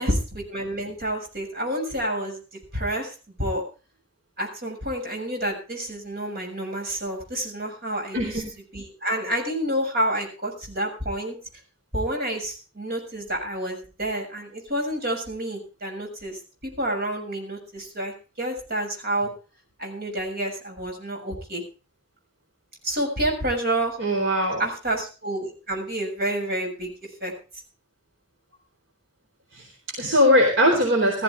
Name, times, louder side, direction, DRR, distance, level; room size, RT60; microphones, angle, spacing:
voice 1, 0.0-2.4 2.7-3.6 4.4-8.3 8.7-11.4 11.9-19.3 19.8-21.6 22.8-24.0 24.6-26.9 27.2-27.3, right 1 dB, 55° right, 2 dB, 6.8 m, -29 dB
voice 2, 24.0-24.6 29.5-31.2, equal, 70° right, 1 dB, 4.1 m, -21 dB
18.5 x 14.0 x 3.5 m, 0.34 s
head